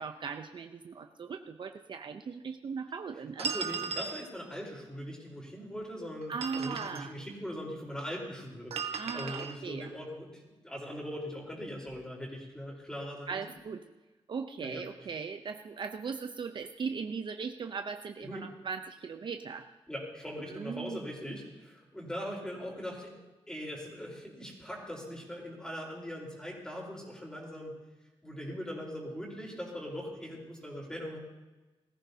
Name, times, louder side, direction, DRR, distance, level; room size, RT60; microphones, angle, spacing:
voice 1, 0.0-3.5 6.3-7.1 8.9-9.9 13.3-13.8 14.3-19.7 20.5-21.0, right 5 dB, 50° right, 6 dB, 0.7 m, -38 dB
voice 2, 3.4-13.4 14.6-14.8 18.2-18.5 19.9-23.1 23.5-27.7 28.2-31.2, equal, 5° left, -2 dB, 4.0 m, -41 dB
sound 1, 3.4-4.2 6.2-7.0 8.7-9.5, right 6 dB, 85° right, 1.2 m, -36 dB
20.5 x 14.5 x 2.8 m, 1.1 s
wide cardioid pair, 135°, 10 cm